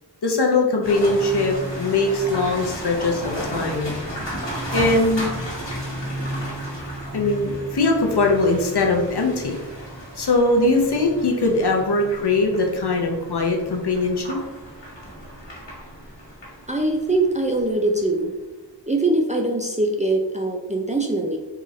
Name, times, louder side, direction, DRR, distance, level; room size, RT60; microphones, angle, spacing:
voice 1, 0.2-3.9 4.7-5.3 7.1-9.5 10.2-14.4, left 2 dB, 65° left, 2 dB, 0.7 m, -21 dB
sound 1, 0.8-18.0, right 1 dB, 85° left, 1.3 m, -33 dB
voice 2, 16.7-18.3 18.9-21.4, right 2 dB, 20° right, 1 dB, 0.3 m, -22 dB
3.8 x 2.4 x 3.1 m, 1.1 s
wide cardioid pair, 45°, 42 cm